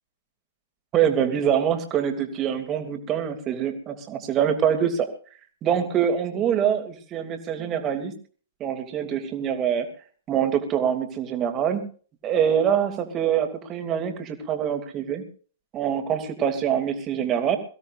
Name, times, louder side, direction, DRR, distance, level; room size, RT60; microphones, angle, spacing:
voice 1, 0.9-5.1 5.6-8.1 8.6-9.9 10.3-11.8 12.2-15.2 15.7-17.6, right 9 dB, 25° right, 7 dB, 3.0 m, -24 dB
23.0 x 16.5 x 2.6 m, 0.42 s
figure-of-eight pair, 110°, 0 cm